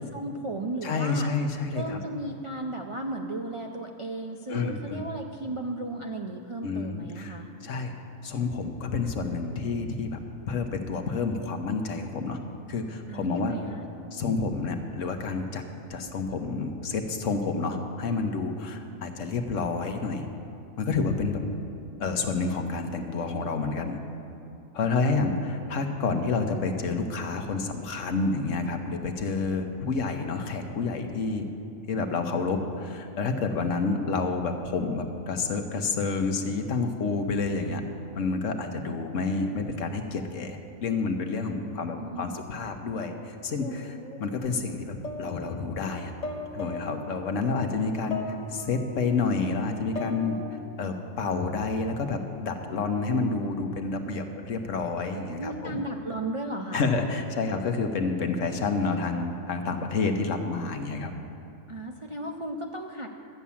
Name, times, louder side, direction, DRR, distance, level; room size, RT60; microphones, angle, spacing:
voice 1, 0.0-1.3 1.7-7.5 13.1-13.8 25.0-25.6 41.6-42.4 55.3-56.8 61.7-63.2, right 1 dB, 40° right, 1 dB, 0.4 m, -35 dB
voice 2, 0.8-2.0 4.5-5.0 6.6-7.3 7.6-7.9 8.2-10.2 10.5-12.4 12.7-13.6 14.1-15.6 15.9-20.3 20.8-21.4 22.0-24.0 24.7-31.4 31.9-37.8 38.1-46.1 46.5-50.4 50.8-55.8 56.7-61.1, left 4 dB, 65° left, 5 dB, 1.3 m, -29 dB
sound 1, 43.6-44.7 45.0-49.0 49.7-51.3, left 3 dB, 30° left, 0.9 m, -39 dB
12.0 x 7.2 x 8.4 m, 2.7 s
omnidirectional pair, 1.4 m